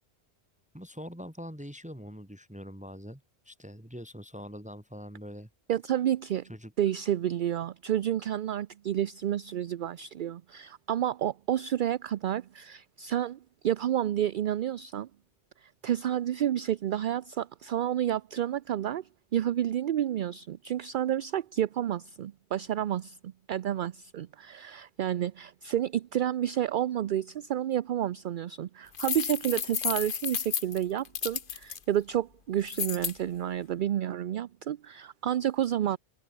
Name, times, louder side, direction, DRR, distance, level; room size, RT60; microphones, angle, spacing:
voice 1, 0.7-5.5 6.5-6.7, equal, 5° right, 2.3 m, -43 dB
voice 2, 5.7-6.5 6.8-15.1 15.6-36.0, right 11 dB, 55° right, 0.6 m, -30 dB
sound 1, 28.9-31.8 32.7-33.1, left 7 dB, 50° left, 1.1 m, -32 dB
omnidirectional pair, 1.1 m